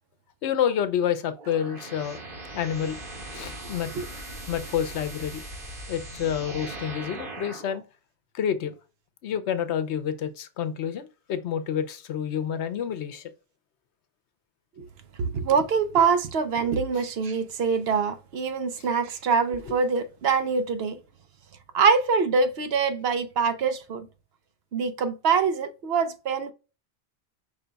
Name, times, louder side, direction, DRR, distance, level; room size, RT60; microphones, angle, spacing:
voice 1, 0.4-2.2 2.5-3.0 3.3-3.9 4.5-5.5 5.9-7.8 8.3-8.7 9.2-13.3, left 9 dB, 85° left, 0.9 m, -28 dB
sound 1, 1.4-7.8, right 1 dB, 55° right, 1.6 m, -39 dB
voice 2, 15.2-21.0 21.7-24.1 24.7-26.5, right 5 dB, 70° right, 0.9 m, -24 dB
5.3 x 2.2 x 3.9 m
omnidirectional pair, 1.1 m